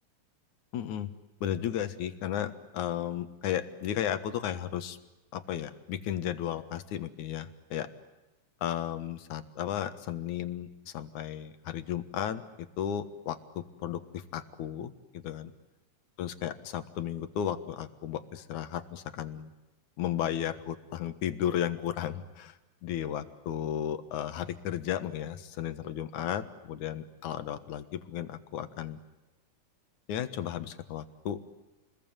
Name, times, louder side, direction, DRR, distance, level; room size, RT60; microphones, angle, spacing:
voice 1, 0.7-1.1 1.4-5.0 5.3-7.9 8.6-12.4 12.8-15.5 16.2-19.5 20.0-22.5 22.8-29.0 30.1-31.5, left 10 dB, 80° left, 11 dB, 2.9 m, -34 dB
28.5 x 21.5 x 9.0 m, 1.0 s
omnidirectional pair, 3.4 m